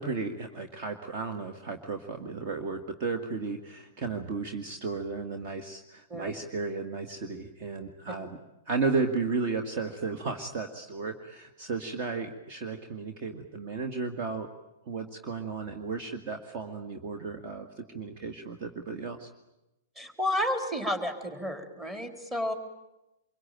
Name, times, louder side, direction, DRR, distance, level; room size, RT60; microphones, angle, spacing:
voice 1, 0.0-8.4 8.7-14.5 14.9-19.3, right 4 dB, 40° right, 6 dB, 2.1 m, -34 dB
voice 2, 20.0-22.5, left 1 dB, 15° right, 7 dB, 3.9 m, -31 dB
26.5 x 23.5 x 9.1 m, 0.95 s
figure-of-eight pair, 105°, 0 cm